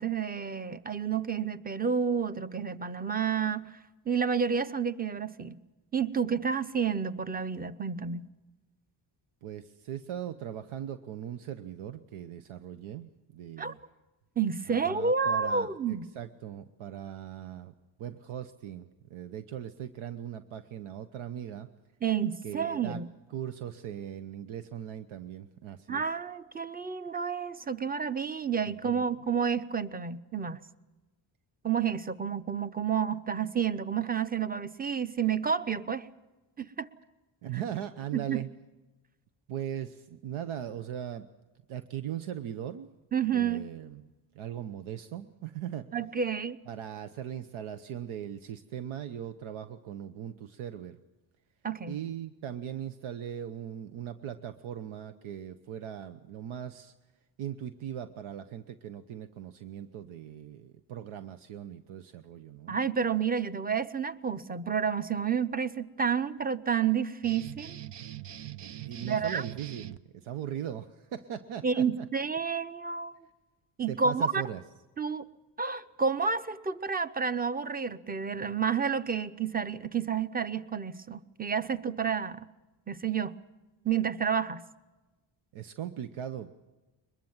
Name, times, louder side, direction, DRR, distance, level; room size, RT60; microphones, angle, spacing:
voice 1, 0.0-3.7 4.1-5.6 5.9-8.3 13.6-13.7 14.4-16.1 22.0-23.1 25.9-30.6 31.6-36.1 36.6-36.9 38.1-38.4 43.1-43.7 45.9-46.6 51.6-51.9 62.7-67.8 69.0-69.4 71.6-73.2 73.8-74.4 75.0-75.2 75.6-82.5 82.9-83.3 83.8-84.6, right 6 dB, 20° right, 14 dB, 0.8 m, -30 dB
voice 2, 9.4-13.8 14.7-17.7 18.0-21.7 22.4-23.0 23.3-26.0 28.8-29.1 37.4-38.5 39.5-41.3 41.7-43.0 43.3-44.0 44.3-45.9 46.7-51.0 51.9-56.9 57.4-62.8 68.6-72.1 73.9-74.6 85.5-86.5, right 10 dB, 85° right, 10 dB, 1.0 m, -39 dB
sound 1, 67.2-70.0, right 12 dB, 60° right, 0.8 m, -42 dB
22.5 x 21.5 x 7.3 m, 1.1 s
cardioid pair, 100°, 47 cm